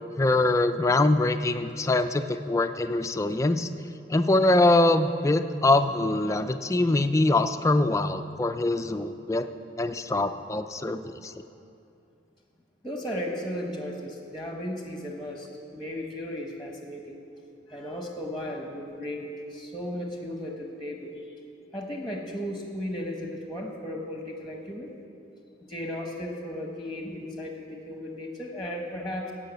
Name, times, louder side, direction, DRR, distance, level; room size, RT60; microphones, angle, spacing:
voice 1, 0.2-3.7 4.1-9.5 9.8-11.3, left 2 dB, 15° left, 9 dB, 0.3 m, -23 dB
voice 2, 12.8-17.2 17.7-21.1 21.7-24.9 25.6-29.3, equal, ahead, 1 dB, 1.0 m, -35 dB
15.5 x 5.7 x 8.0 m, 2.6 s
head